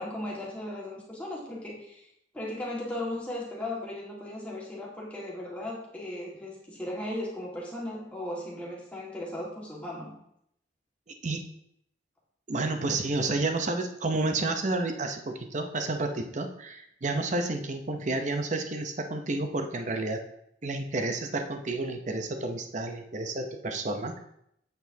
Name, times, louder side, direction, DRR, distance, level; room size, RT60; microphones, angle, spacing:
voice 1, 0.0-2.1 2.3-10.1, left 1 dB, 10° left, -5 dB, 1.7 m, -36 dB
voice 2, 12.5-20.2 20.6-24.1, right 2 dB, 40° right, 6 dB, 0.7 m, -30 dB
8.0 x 6.7 x 2.7 m, 0.74 s
head